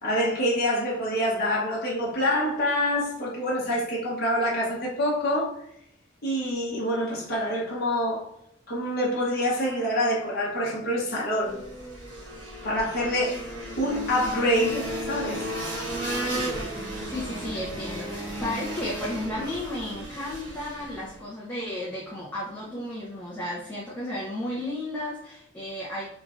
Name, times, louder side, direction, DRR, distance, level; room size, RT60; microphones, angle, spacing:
voice 1, 0.0-5.6 6.2-8.3 8.7-11.6 12.6-13.4 13.8-15.5, equal, 55° left, -4 dB, 0.8 m, -26 dB
sound 1, 11.4-21.2, right 1 dB, 75° right, 1.2 m, -34 dB
voice 2, 16.2-26.1, left 1 dB, 10° left, -7 dB, 0.6 m, -34 dB
3.1 x 2.4 x 2.4 m, 0.74 s
head